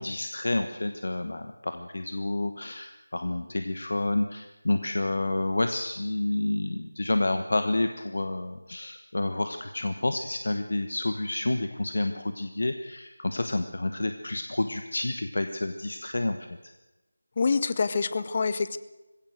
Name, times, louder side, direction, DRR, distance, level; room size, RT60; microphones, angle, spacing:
voice 1, 0.0-16.4, left 2 dB, 55° left, 7 dB, 1.2 m, -29 dB
voice 2, 17.4-18.8, left 4 dB, 30° left, 14 dB, 0.8 m, -26 dB
20.5 x 16.0 x 7.9 m, 1.1 s
figure-of-eight pair, 165°, 0 cm